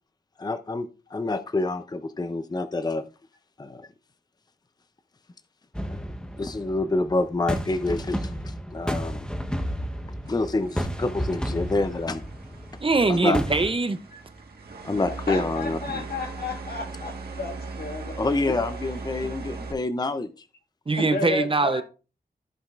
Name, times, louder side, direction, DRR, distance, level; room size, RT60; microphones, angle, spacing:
voice 1, 0.4-3.0 3.6-3.9 5.9-6.0 6.4-9.3 10.3-12.2 13.1-13.4 14.8-16.0 18.2-20.3, left 2 dB, 25° left, 0.6 m, -27 dB
sound 1, 5.7-13.7, equal, 5° left, 1.0 m, -32 dB
sound 2, 10.3-19.7, right 3 dB, 85° right, 1.6 m, -39 dB
voice 2, 12.8-14.0 20.9-21.8, right 3 dB, 35° right, 0.7 m, -22 dB
voice 3, 15.3-18.2 18.5-18.6 19.2-19.3 21.0-21.8, left 3 dB, 80° left, 2.0 m, -32 dB
14.5 x 5.1 x 2.5 m
wide cardioid pair, 70°, 16 cm